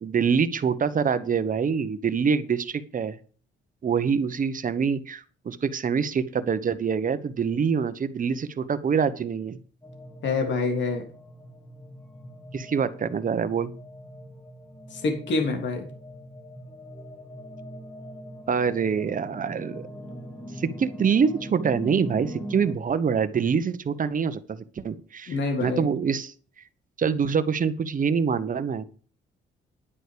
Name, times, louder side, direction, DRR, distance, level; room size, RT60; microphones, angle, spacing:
voice 1, 0.0-3.2 3.8-9.6 12.5-13.7 18.5-19.9 20.6-26.3 27.0-28.8, right 6 dB, 45° right, 12 dB, 1.2 m, -25 dB
sound 1, 9.8-22.7, equal, 5° left, 2.7 m, -41 dB
voice 2, 10.2-11.0 14.9-15.9 25.3-25.9, left 3 dB, 65° left, 4 dB, 3.3 m, -26 dB
10.0 x 9.4 x 5.2 m, 0.41 s
cardioid pair, 90°, 20 cm